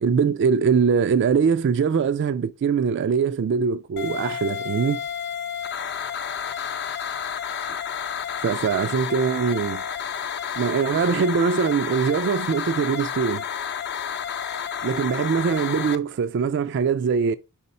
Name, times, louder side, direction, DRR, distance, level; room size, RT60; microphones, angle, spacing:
voice 1, 0.0-5.0 7.7-7.8 8.4-9.8 10.6-13.4 14.8-17.3, right 6 dB, 55° right, 0.3 m, -22 dB
sound 1, 4.0-16.0, left 8 dB, 50° left, 0.6 m, -30 dB
4.8 x 4.2 x 5.4 m
head